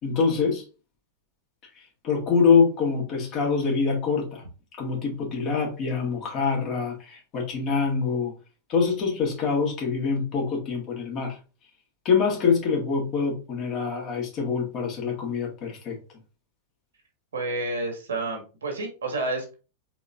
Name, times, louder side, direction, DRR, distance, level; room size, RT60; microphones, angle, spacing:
voice 1, 0.0-0.6 2.0-4.4 4.8-8.3 8.7-11.4 12.0-16.0, left 5 dB, 35° left, 1.7 m, -25 dB
voice 2, 17.3-19.5, right 2 dB, 70° right, 1.5 m, -30 dB
4.0 x 3.9 x 2.5 m
figure-of-eight pair, 90°, 0 cm